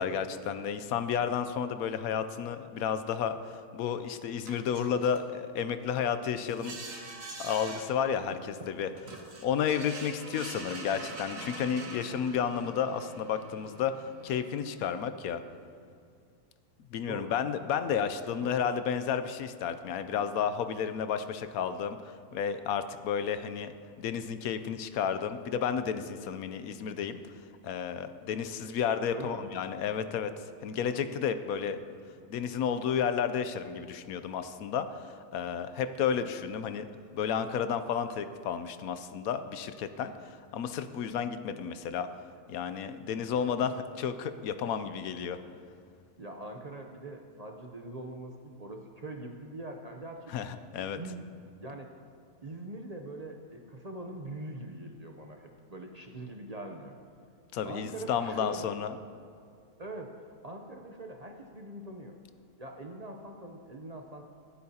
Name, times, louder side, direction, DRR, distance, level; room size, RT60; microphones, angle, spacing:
voice 1, 0.0-6.8 7.4-8.4 8.7-8.9 9.4-15.4 16.9-23.7 24.0-27.2 27.6-30.3 30.6-31.8 32.3-36.9 37.1-42.1 42.5-45.4 50.3-51.0 57.5-58.9, left 7 dB, 75° left, 10 dB, 1.0 m, -32 dB
sound 1, 3.8-3.9 4.5-5.2 6.5-7.9 8.5-8.6 9.0-15.1, right 3 dB, 60° right, 1.8 m, -44 dB
voice 2, 17.0-17.4 18.4-18.6 29.1-29.5 32.1-32.3 46.2-50.3 51.0-51.2 51.6-51.9 52.4-56.9 57.6-58.7 59.8-60.1 60.4-62.1 62.6-64.2, right 2 dB, 40° right, 2 dB, 0.5 m, -43 dB
25.0 x 8.5 x 2.8 m, 2.3 s
omnidirectional pair, 1.6 m